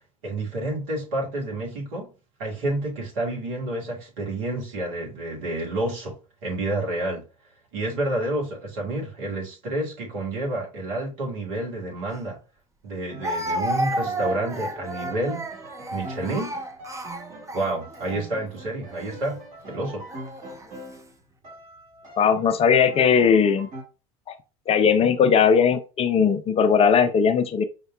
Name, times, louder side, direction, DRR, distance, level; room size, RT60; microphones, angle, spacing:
voice 1, 0.2-2.1 2.4-6.2 6.4-7.2 7.7-12.4 12.8-15.5 15.9-16.6 17.5-20.0, right 1 dB, 65° right, 1.9 m, -29 dB
Speech, 12.1-12.2 13.2-18.1 18.9-19.2 20.1-20.7, right 1 dB, 15° right, 0.6 m, -31 dB
Piano, 13.1-21.1 21.4-23.8, right 1 dB, 45° right, 2.3 m, -43 dB
voice 2, 22.2-23.7 24.3-24.4 24.7-27.6, left 6 dB, 35° left, 0.5 m, -19 dB
5.2 x 2.9 x 2.3 m
hypercardioid pair, 75°, 18 cm